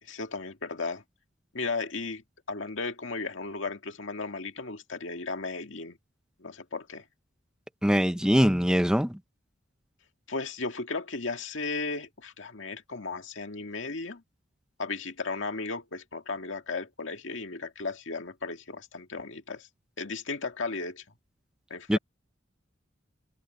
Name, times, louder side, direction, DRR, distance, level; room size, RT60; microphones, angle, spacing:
voice 1, 0.0-1.0 1.5-2.2 2.5-6.0 6.4-7.0 10.3-14.2 14.8-19.7 20.0-21.0 21.7-22.0, left 3 dB, 75° left, 2.0 m, -35 dB
voice 2, 7.8-9.2 21.9-22.0, equal, 5° right, 1.0 m, -22 dB
head